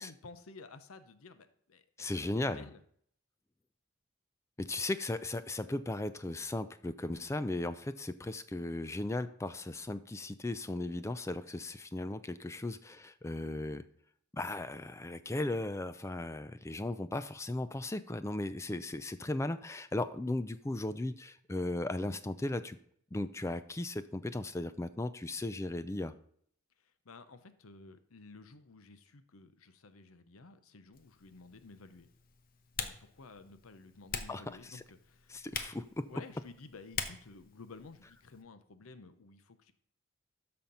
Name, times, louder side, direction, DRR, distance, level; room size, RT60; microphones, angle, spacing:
voice 1, 0.0-2.8 26.8-32.1 32.8-35.4 36.1-39.7, left 3 dB, 80° left, 11 dB, 0.7 m, -53 dB
voice 2, 2.0-2.7 4.6-13.8 14.3-22.8 23.1-26.1 34.3-34.8 35.3-36.1, left 2 dB, 15° left, 13 dB, 0.3 m, -36 dB
Typing, 30.9-38.4, left 6 dB, 40° left, 0.8 m, -45 dB
13.0 x 4.4 x 5.4 m, 0.64 s
head